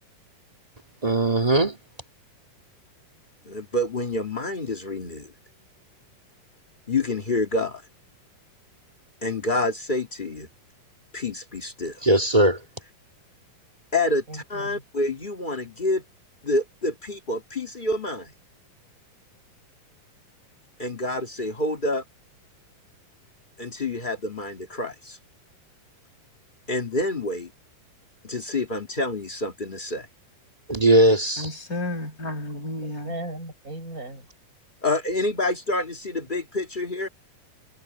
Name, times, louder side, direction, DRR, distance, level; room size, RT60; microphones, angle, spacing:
voice 1, 1.0-1.8 12.0-12.6 30.7-31.4, right 1 dB, 65° right, 0.3 m, -19 dB
voice 2, 3.4-5.3 6.9-7.8 9.2-10.5 11.1-12.0 13.9-16.0 16.4-18.3 20.8-22.0 23.6-25.2 26.7-27.5 28.2-30.1 34.8-37.1, left 2 dB, 75° left, 0.4 m, -27 dB
voice 3, 14.3-14.8 32.8-34.3, right 2 dB, 20° right, 6.8 m, -37 dB
voice 4, 31.4-33.1, left 1 dB, 20° left, 6.2 m, -32 dB
omnidirectional pair, 4.2 m